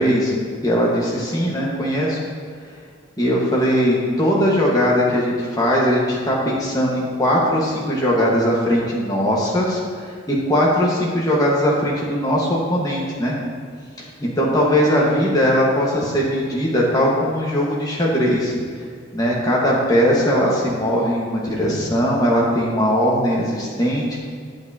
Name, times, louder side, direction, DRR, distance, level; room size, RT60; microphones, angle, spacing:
voice 1, 0.0-2.2 3.2-13.4 14.2-18.5 19.1-24.1, equal, 20° left, -5 dB, 1.4 m, -19 dB
8.8 x 7.9 x 2.8 m, 2.1 s
head